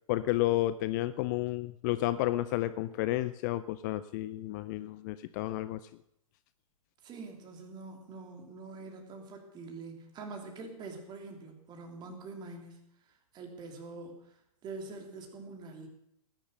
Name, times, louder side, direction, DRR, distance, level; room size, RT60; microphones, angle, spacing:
voice 1, 0.1-5.8, left 16 dB, 30° left, 14 dB, 0.5 m, -31 dB
voice 2, 7.0-12.8 13.1-15.9, right 3 dB, 25° right, 3 dB, 3.2 m, -45 dB
18.0 x 10.5 x 6.7 m, 0.78 s
figure-of-eight pair, 115°, 19 cm